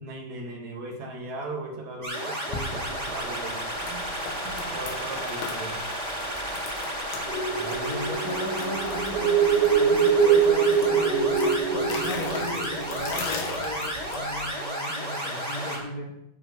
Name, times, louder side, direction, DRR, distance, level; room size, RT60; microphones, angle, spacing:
voice 1, 0.0-4.0 4.4-5.7, right 2 dB, 50° right, 1 dB, 2.7 m, -37 dB
sound 1, 2.0-15.8, right 1 dB, 10° right, 2.9 m, -32 dB
sound 2, 2.5-14.5, left 4 dB, 85° left, 4.0 m, -40 dB
sound 3, 7.3-13.8, right 6 dB, 90° right, 5.5 m, -24 dB
voice 2, 7.5-16.1, left 1 dB, 45° left, -2 dB, 2.9 m, -36 dB
18.0 x 7.9 x 4.0 m, 0.84 s
omnidirectional pair, 5.1 m